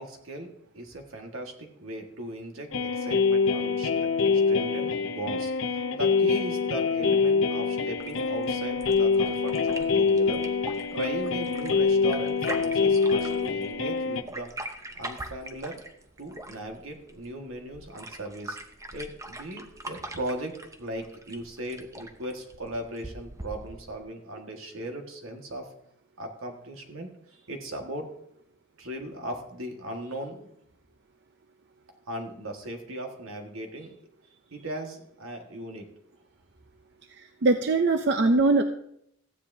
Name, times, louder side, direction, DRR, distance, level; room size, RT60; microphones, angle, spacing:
voice 1, 0.0-4.1 4.5-10.4 10.9-14.5 15.0-15.8 16.2-18.6 18.9-25.7 26.2-28.1 28.8-30.5 32.1-34.0 34.5-35.9, right 1 dB, 85° right, 3 dB, 1.7 m, -38 dB
sound 1, 2.7-14.2, left 5 dB, 70° left, 0.7 m, -25 dB
sound 2, 8.0-24.0, right 1 dB, 15° right, 0.7 m, -42 dB
voice 2, 37.2-38.6, right 3 dB, 55° right, 6 dB, 0.5 m, -22 dB
15.0 x 9.7 x 2.7 m, 0.71 s
head